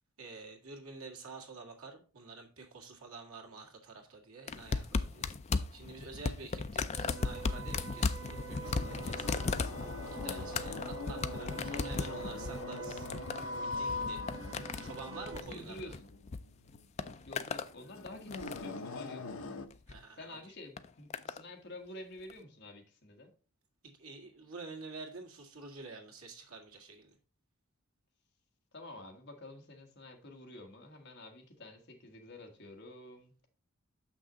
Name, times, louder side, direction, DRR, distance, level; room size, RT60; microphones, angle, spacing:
voice 1, 0.2-5.3 5.7-9.3 10.2-13.1 13.8-14.2 14.8-15.9 19.9-20.4 23.8-27.2, right 3 dB, 80° right, 1.9 m, -48 dB
sound 1, 4.5-16.4 16.7-17.7 18.1-18.8 19.7-20.0 20.8-21.4 22.3-22.4, left 4 dB, 30° left, 0.4 m, -37 dB
sound 2, 6.9-15.4, right 5 dB, 60° right, 1.4 m, -46 dB
sound 3, 8.6-19.7, left 3 dB, 70° left, 0.8 m, -43 dB
voice 2, 15.2-16.0 17.3-19.3 20.2-23.3 28.7-33.3, left 1 dB, 50° left, 1.5 m, -49 dB
6.6 x 6.0 x 3.8 m
head